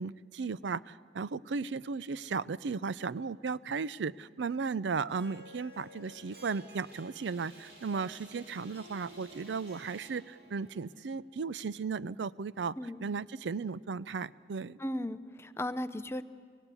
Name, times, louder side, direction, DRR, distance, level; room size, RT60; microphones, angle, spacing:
voice 1, 0.0-12.7 13.0-14.8, right 5 dB, 90° right, 18 dB, 0.5 m, -35 dB
Harp, 5.1-10.9, right 1 dB, 65° right, 2.2 m, -54 dB
sound 1, 6.0-11.1, equal, 35° right, 6.1 m, -58 dB
voice 2, 14.8-16.2, left 1 dB, 15° left, 12 dB, 0.6 m, -36 dB
25.0 x 17.0 x 8.3 m, 2.1 s
head